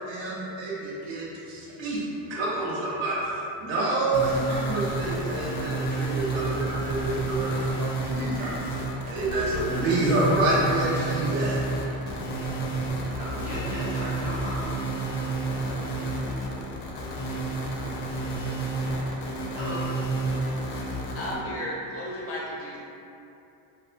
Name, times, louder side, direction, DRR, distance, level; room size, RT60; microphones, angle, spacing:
voice 1, 0.0-2.0 2.3-13.0, right 2 dB, 60° right, -6 dB, 0.9 m, -28 dB
sound 1, 4.1-21.3, right 2 dB, 90° left, 0.7 m, -30 dB
voice 2, 13.2-14.8 15.6-15.7 19.5-19.9, equal, 15° right, -13 dB, 1.0 m, -36 dB
voice 3, 21.1-22.8, left 1 dB, 30° left, -6 dB, 0.5 m, -33 dB
2.7 x 2.2 x 2.5 m, 2.7 s
cardioid pair, 140°, 50 cm